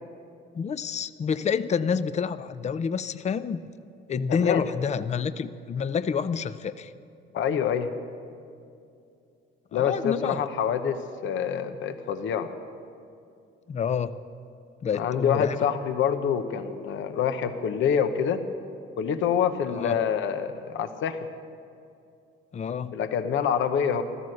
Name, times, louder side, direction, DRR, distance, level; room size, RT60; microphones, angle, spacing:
voice 1, 0.5-3.7 4.1-6.9 9.7-10.4 13.7-14.2 14.8-15.6 19.7-20.0 22.5-23.0, left 6 dB, 35° left, 13 dB, 0.5 m, -28 dB
voice 2, 4.3-4.6 7.3-7.9 9.7-12.5 14.9-18.4 19.0-21.3 22.9-24.0, left 8 dB, 75° left, 9 dB, 0.9 m, -26 dB
15.0 x 13.5 x 6.5 m, 2.5 s
cardioid pair, 90°, 20 cm